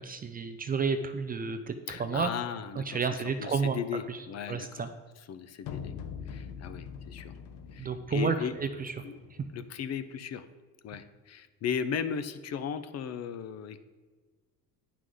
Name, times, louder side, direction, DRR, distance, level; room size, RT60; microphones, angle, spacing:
voice 1, 0.0-2.3 2.8-3.8 4.1-4.2 4.5-4.9 7.8-8.9, right 5 dB, 25° right, 8 dB, 0.4 m, -31 dB
voice 2, 1.9-4.9 5.3-5.9 6.3-7.3 7.7-8.5 9.0-9.2 9.5-10.5 10.8-13.8, left 7 dB, 40° left, 12 dB, 0.6 m, -36 dB
sound 1, 5.6-9.7, left 7 dB, 70° left, 0.9 m, -43 dB
9.4 x 5.9 x 4.9 m, 1.4 s
cardioid pair, 135°, 38 cm